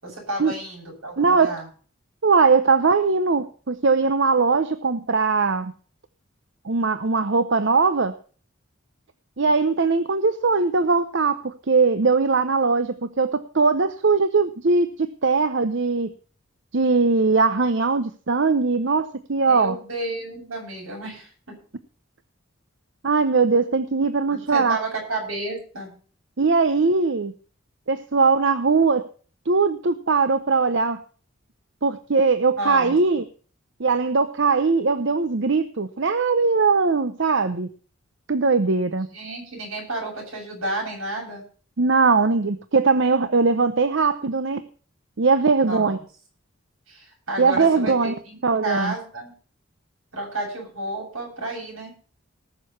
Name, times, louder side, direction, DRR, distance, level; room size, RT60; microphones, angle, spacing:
voice 1, 0.0-1.7 19.4-21.3 24.3-25.9 32.5-33.0 39.1-41.4 45.6-46.0 46.9-49.3 50.1-51.9, right 2 dB, 80° right, 0 dB, 7.9 m, -31 dB
voice 2, 1.2-1.5 2.2-5.7 6.6-8.1 9.4-16.1 16.7-19.7 23.0-24.8 26.4-27.3 27.9-29.1 29.5-31.0 31.8-33.2 33.8-37.7 38.3-39.1 41.8-44.6 45.2-46.0 47.4-48.1 48.4-48.9, right 4 dB, 60° right, 11 dB, 0.7 m, -20 dB
19.0 x 6.7 x 5.8 m, 0.41 s
head